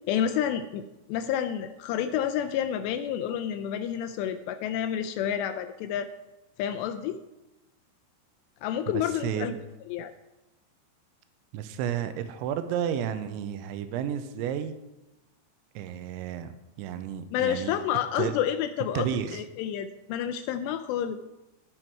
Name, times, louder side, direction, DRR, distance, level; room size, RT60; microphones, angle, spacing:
voice 1, 0.1-6.1 6.6-7.2 8.6-9.5 9.9-10.1 17.3-21.2, left 9 dB, 85° left, 8 dB, 2.4 m, -29 dB
voice 2, 9.2-9.6 11.5-14.7 15.8-16.5 16.8-17.8 18.2-18.3 18.9-19.4, right 9 dB, 85° right, 10 dB, 3.0 m, -31 dB
16.5 x 6.1 x 4.6 m, 0.98 s
omnidirectional pair, 5.4 m